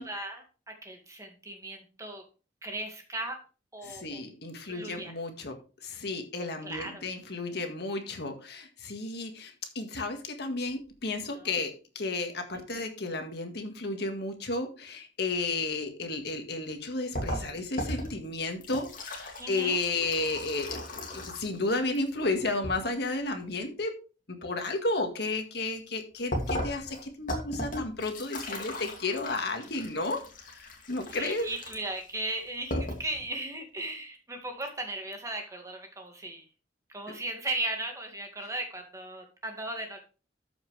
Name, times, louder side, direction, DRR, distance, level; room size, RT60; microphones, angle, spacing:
voice 1, 0.0-2.2 2.6-3.4 3.7-4.2 4.6-5.1 6.6-7.0 11.3-11.5 19.4-19.8 31.1-36.4 36.9-40.0, right 2 dB, 20° right, 3 dB, 2.0 m, -37 dB
voice 2, 3.8-23.9 24.3-31.5, left 2 dB, 65° left, 5 dB, 1.8 m, -33 dB
sound 1, 17.1-21.6 21.9-22.8 26.3-32.0 32.4-32.5 32.7-33.2, left 1 dB, 50° left, 2.5 m, -36 dB
13.0 x 5.6 x 3.3 m, 0.34 s
head